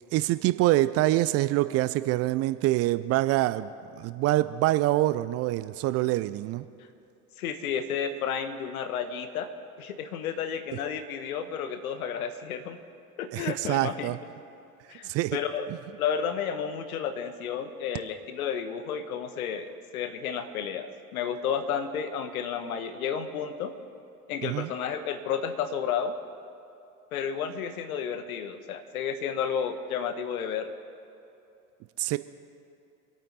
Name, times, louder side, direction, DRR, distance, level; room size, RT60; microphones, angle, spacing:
voice 1, 0.1-3.7 4.0-6.6 13.3-14.2 15.0-15.4 24.4-24.7 32.0-32.2, right 16 dB, 35° right, 14 dB, 0.4 m, -25 dB
voice 2, 7.4-9.5 9.8-12.8 13.2-14.1 14.9-15.7 16.0-23.7 24.3-26.2 27.1-30.7, left 7 dB, 70° left, 9 dB, 1.3 m, -32 dB
26.0 x 8.8 x 4.0 m, 2.7 s
figure-of-eight pair, 75°, 45 cm